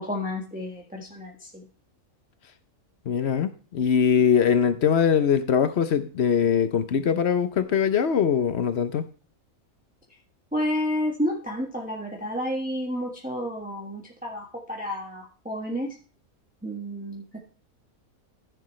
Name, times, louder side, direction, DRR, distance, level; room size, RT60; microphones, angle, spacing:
voice 1, 0.0-1.6 10.5-15.9 16.6-17.4, equal, 5° right, -2 dB, 1.4 m, -30 dB
voice 2, 3.1-9.0, left 7 dB, 55° left, 11 dB, 0.9 m, -22 dB
14.0 x 6.8 x 3.2 m, 0.38 s
omnidirectional pair, 1.5 m